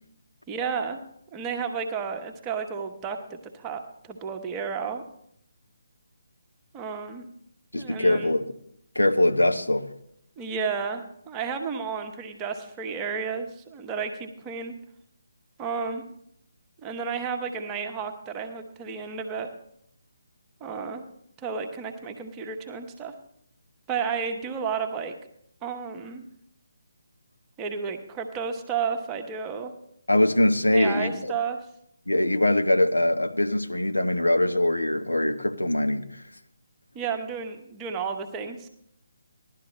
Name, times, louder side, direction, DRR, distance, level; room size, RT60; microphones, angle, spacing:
voice 1, 0.5-1.0 1.3-5.0 6.7-7.2 7.7-8.3 10.4-14.7 15.6-16.0 16.8-19.5 20.6-21.0 21.4-23.1 23.9-25.2 25.6-26.2 27.6-29.7 30.7-31.6 36.9-38.7, right 6 dB, 15° right, 0.9 m, -32 dB
voice 2, 7.7-8.5 8.9-9.9 30.1-31.3 32.1-36.2, left 1 dB, 80° left, 0.9 m, -22 dB
16.5 x 11.5 x 3.1 m
figure-of-eight pair, 145°, 0 cm